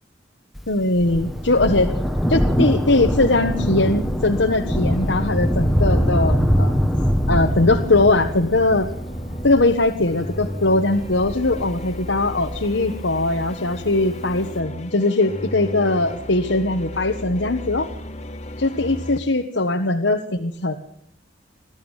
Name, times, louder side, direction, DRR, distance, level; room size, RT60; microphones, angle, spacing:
Thunder, 0.6-13.4 14.3-14.4, equal, ahead, 1.6 m, -23 dB
voice 1, 0.7-1.9 2.3-6.8 7.3-8.9 9.4-17.9 18.6-20.8, left 2 dB, 85° left, 3 dB, 1.5 m, -20 dB
sound 1, 4.3-4.6 4.9-9.7 10.1-19.2, equal, 35° left, 2.0 m, -34 dB
22.0 x 13.5 x 9.1 m, 0.70 s
head